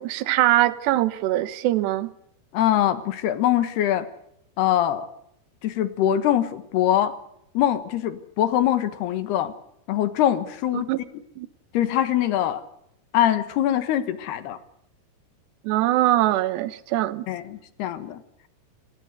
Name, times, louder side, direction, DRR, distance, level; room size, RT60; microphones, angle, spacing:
voice 1, 0.0-2.1 10.7-11.0 11.4-11.5 15.6-17.3, right 15 dB, 80° right, 15 dB, 3.2 m, -22 dB
voice 2, 2.5-4.1 4.6-5.1 5.6-7.1 7.5-9.5 9.9-10.9 11.7-12.6 13.1-14.6 17.3-18.2, left 11 dB, 70° left, 12 dB, 3.3 m, -23 dB
28.0 x 15.0 x 8.1 m, 0.75 s
omnidirectional pair, 5.0 m